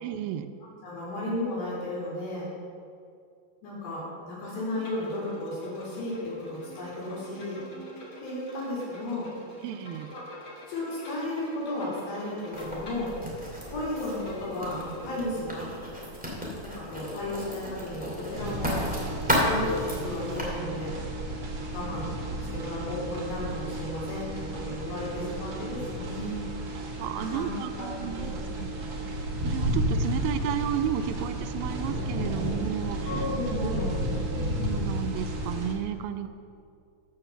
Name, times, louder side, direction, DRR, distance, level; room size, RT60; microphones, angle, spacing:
voice 1, 0.0-0.5 9.6-10.1 27.0-29.0 29.4-33.8 34.3-36.3, right 10 dB, 90° right, 8 dB, 2.5 m, -33 dB
voice 2, 0.8-2.5 3.6-7.6 8.2-9.3 10.1-10.2 10.7-13.1 13.7-15.7 16.6-18.8 19.4-20.9 21.7-22.1 22.5-26.4 27.2-27.5 27.8-28.2 33.1-34.7, left 1 dB, 90° left, -8 dB, 4.7 m, -34 dB
Bowed string instrument, 4.7-15.2, left 1 dB, 40° left, 2.5 m, -47 dB
Writing, 12.5-20.4, equal, 5° right, 1.6 m, -33 dB
sound 1, 18.3-35.7, right 1 dB, 55° right, 1.4 m, -32 dB
13.5 x 5.4 x 6.9 m, 2.4 s
omnidirectional pair, 4.1 m